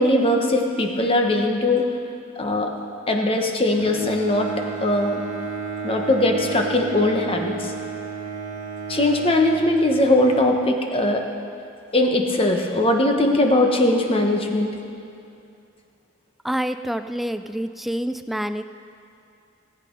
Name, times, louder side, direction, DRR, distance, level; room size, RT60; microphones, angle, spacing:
voice 1, 0.0-1.8 2.4-2.7 3.1-4.5 4.8-5.2 5.8-7.7 8.9-11.2 11.9-14.7, left 1 dB, 30° left, 2 dB, 1.1 m, -20 dB
Bowed string instrument, 3.8-10.4, right 5 dB, 40° right, 1.5 m, -32 dB
voice 2, 16.4-18.6, equal, ahead, 10 dB, 0.3 m, -27 dB
18.0 x 8.4 x 5.3 m, 2.5 s
head